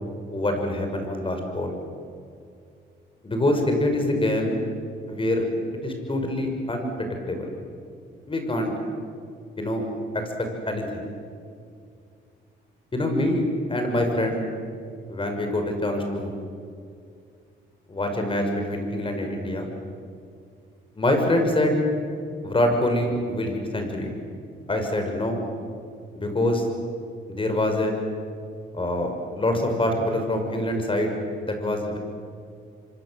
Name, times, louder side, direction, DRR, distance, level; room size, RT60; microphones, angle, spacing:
voice 1, 0.3-1.7 3.2-4.6 5.1-5.4 5.8-7.5 8.3-8.7 9.6-9.8 10.1-10.2 10.7-11.1 12.9-14.4 15.1-16.3 17.9-19.7 21.0-21.7 22.4-24.1 24.7-25.4 26.1-26.6 27.3-27.9 28.7-32.0, left 1 dB, 25° left, 4 dB, 6.4 m, -25 dB
26.0 x 25.0 x 8.0 m, 2.4 s
cardioid pair, 90°, 20 cm